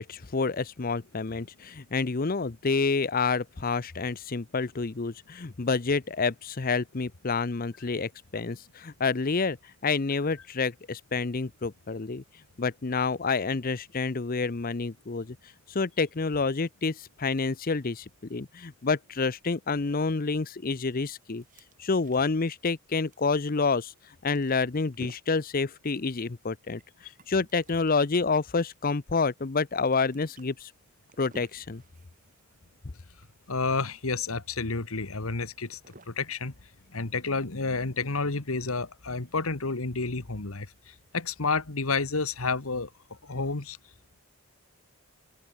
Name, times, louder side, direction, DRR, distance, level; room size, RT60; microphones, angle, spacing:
voice 1, 0.0-9.6 9.8-12.2 12.6-15.4 15.7-21.4 21.8-23.9 24.2-26.8 27.3-30.7 31.2-31.8, left 4 dB, 40° left, 0.7 m, -28 dB
sound 1, 20.8-37.3, right 1 dB, 40° right, 5.7 m, -56 dB
voice 2, 33.5-35.8 36.1-36.5 36.9-42.9 43.2-43.8, left 4 dB, 80° left, 1.7 m, -30 dB
open air
head